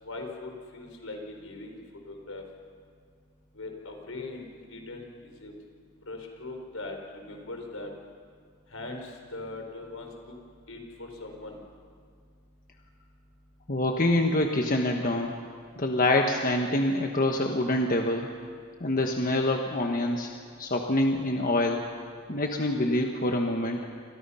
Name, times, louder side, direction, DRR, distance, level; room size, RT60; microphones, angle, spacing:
voice 1, 0.0-1.8 2.1-2.4 3.5-5.5 6.1-7.9 8.7-10.4 10.7-11.6, left 2 dB, 75° left, 3 dB, 4.7 m, -40 dB
voice 2, 13.7-15.3 15.8-18.3 18.8-20.3 20.6-21.8 22.3-23.8, left 1 dB, 40° left, 2 dB, 1.4 m, -26 dB
29.5 x 26.5 x 5.7 m, 2.1 s
head